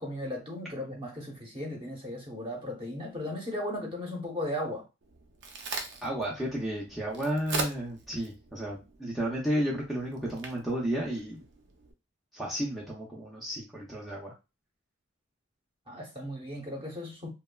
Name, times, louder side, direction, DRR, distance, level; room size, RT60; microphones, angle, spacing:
voice 1, 0.0-4.8 15.9-17.3, left 1 dB, 25° right, 0.8 m, -36 dB
Crack, 5.0-11.9, right 4 dB, 60° right, 0.5 m, -41 dB
voice 2, 6.0-11.4 12.3-14.3, equal, ahead, 0.5 m, -32 dB
3.0 x 2.2 x 2.2 m
head